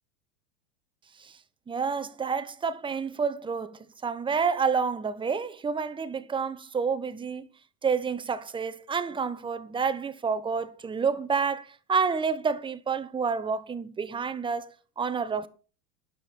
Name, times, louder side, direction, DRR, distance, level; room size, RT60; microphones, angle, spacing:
voice 1, 1.7-7.5 7.8-14.7 15.0-15.5, right 5 dB, 10° right, 0.8 m, -29 dB
12.5 x 10.0 x 4.2 m
figure-of-eight pair, 85°, 48 cm